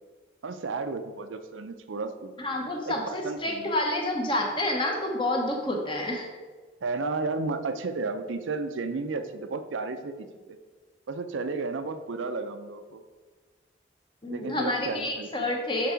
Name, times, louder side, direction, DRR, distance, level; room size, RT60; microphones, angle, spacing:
voice 1, 0.4-2.3 2.9-3.8 6.8-10.6 11.1-13.0 14.3-15.5, right 3 dB, 85° right, 9 dB, 0.5 m, -33 dB
voice 2, 2.4-6.3 14.2-15.9, left 1 dB, 25° left, 2 dB, 0.9 m, -29 dB
5.9 x 4.7 x 5.1 m, 1.4 s
head